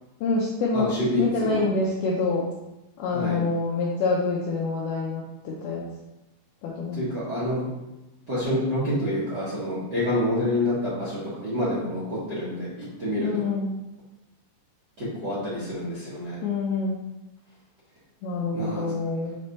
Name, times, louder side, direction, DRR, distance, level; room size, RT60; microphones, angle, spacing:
voice 1, 0.2-0.9 1.2-2.5 3.0-5.8 6.6-7.0 13.2-13.8 16.4-17.0 18.2-19.4, left 3 dB, 80° left, -4 dB, 2.2 m, -26 dB
voice 2, 0.7-1.7 3.1-3.4 6.9-7.7 8.3-13.4 15.0-16.4 18.5-18.8, left 1 dB, 45° right, -11 dB, 1.4 m, -27 dB
7.6 x 4.1 x 3.3 m, 0.98 s
omnidirectional pair, 5.2 m